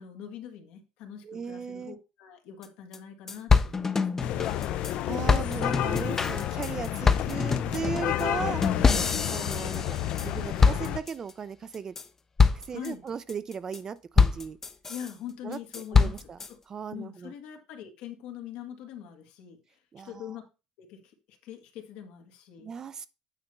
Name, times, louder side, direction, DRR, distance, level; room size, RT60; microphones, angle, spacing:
voice 1, 0.0-4.1 8.8-9.2 12.7-13.0 14.9-16.2 16.5-16.6 16.9-19.6 20.0-20.4 20.8-22.7, left 9 dB, 80° left, 1.7 m, -43 dB
voice 2, 1.2-2.0 5.1-8.6 9.3-11.9 12.7-14.6 15.4-15.6 15.9-16.4 16.7-17.3 19.9-20.2 22.6-23.1, right 6 dB, 30° right, 0.5 m, -37 dB
sound 1, 2.6-2.7 2.9-3.0 3.3-4.9 5.3-10.3 10.6-11.3 11.7-12.0 12.4-12.9 13.3-13.8 14.2-15.1 15.5-16.5, left 5 dB, 20° left, 0.6 m, -25 dB
sound 2, 4.2-11.0, left 12 dB, 60° left, 0.6 m, -31 dB
9.0 x 3.4 x 5.2 m
cardioid pair, 155°, 2 cm